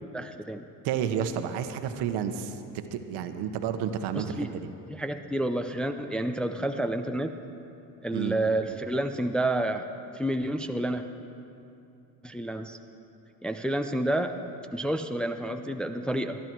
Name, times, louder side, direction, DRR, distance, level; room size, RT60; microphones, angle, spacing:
voice 1, 0.1-0.6 4.1-4.6 4.9-7.3 8.0-9.8 10.2-11.0 12.2-12.8 13.4-14.3 14.7-16.4, right 1 dB, ahead, 6 dB, 0.5 m, -29 dB
voice 2, 0.8-4.7 8.1-8.4, right 8 dB, 65° right, 8 dB, 1.1 m, -31 dB
20.5 x 11.5 x 4.6 m, 2.7 s
supercardioid pair, 90°, 43 cm